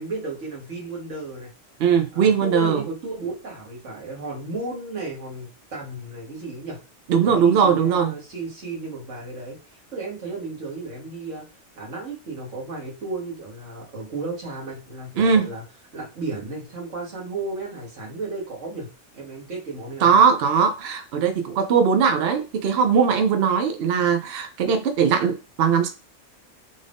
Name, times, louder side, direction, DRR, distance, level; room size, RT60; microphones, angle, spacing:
voice 1, 0.0-1.5 2.1-6.8 7.2-11.5 11.8-15.6 15.9-18.9 19.1-20.2, right 3 dB, 90° right, 1.8 m, -34 dB
voice 2, 1.8-2.8 7.1-8.1 15.2-15.5 20.0-25.9, right 6 dB, 65° right, 0.8 m, -20 dB
3.6 x 2.5 x 3.4 m
omnidirectional pair, 1.2 m